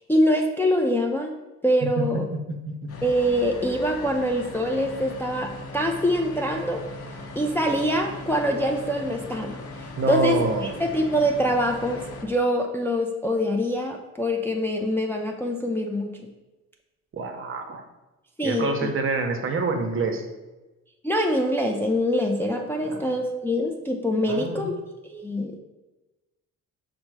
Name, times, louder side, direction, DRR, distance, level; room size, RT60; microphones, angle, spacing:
voice 1, 0.1-1.3 1.6-2.3 3.0-6.8 7.4-9.6 10.1-10.4 10.8-16.2 18.4-18.9 21.0-24.7 25.0-25.6, equal, 5° left, 1 dB, 0.4 m, -24 dB
sound 1, 2.9-12.3, left 2 dB, 50° left, 0.7 m, -39 dB
voice 2, 10.0-10.7 17.1-17.8 18.4-20.2 22.9-23.0 24.2-24.7, right 3 dB, 45° right, 5 dB, 0.7 m, -26 dB
5.3 x 2.1 x 4.6 m, 1.1 s
cardioid pair, 90°, 30 cm